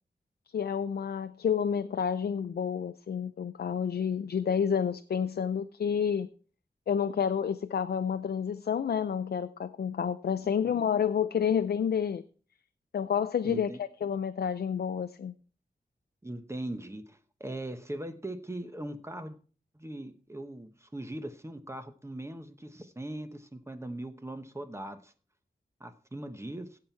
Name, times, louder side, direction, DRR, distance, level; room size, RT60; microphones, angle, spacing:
voice 1, 0.5-6.3 6.9-12.2 12.9-15.3, left 7 dB, 90° left, 0.5 m, -29 dB
voice 2, 10.4-10.8 13.4-13.8 16.2-19.4 19.7-25.1 25.8-26.8, right 1 dB, 15° right, 1.0 m, -40 dB
16.0 x 5.9 x 4.6 m
wide cardioid pair, 100°, 16 cm